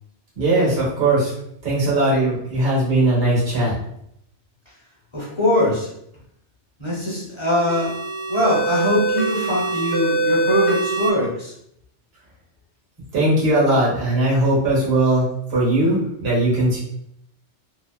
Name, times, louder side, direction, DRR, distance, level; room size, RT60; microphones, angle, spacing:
voice 1, 0.4-1.3 1.6-3.7 13.1-16.8, right 1 dB, 60° right, -7 dB, 1.2 m, -19 dB
voice 2, 5.1-5.9 6.8-7.9 8.3-11.5, left 1 dB, 35° left, -5 dB, 0.5 m, -22 dB
sound 1, 7.7-11.1, right 3 dB, 40° right, 0.3 m, -23 dB
2.7 x 2.0 x 2.2 m, 0.73 s
omnidirectional pair, 1.2 m